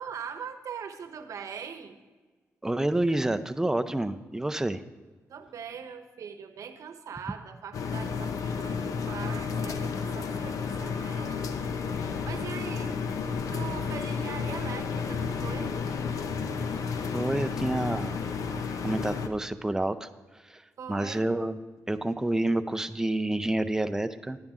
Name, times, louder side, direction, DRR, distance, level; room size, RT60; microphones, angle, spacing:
voice 1, 0.0-2.0 5.3-11.8 12.2-13.0 13.5-15.7 20.8-21.2, right 7 dB, 70° right, 7 dB, 0.9 m, -41 dB
voice 2, 2.6-4.8 17.1-18.2 18.8-20.1 20.4-20.6 20.9-21.6 21.9-24.4, right 1 dB, 10° right, 9 dB, 0.5 m, -28 dB
sound 1, 7.7-19.3, left 5 dB, 75° left, 0.7 m, -32 dB
10.5 x 10.5 x 3.6 m, 1.4 s
cardioid pair, 95°, 6 cm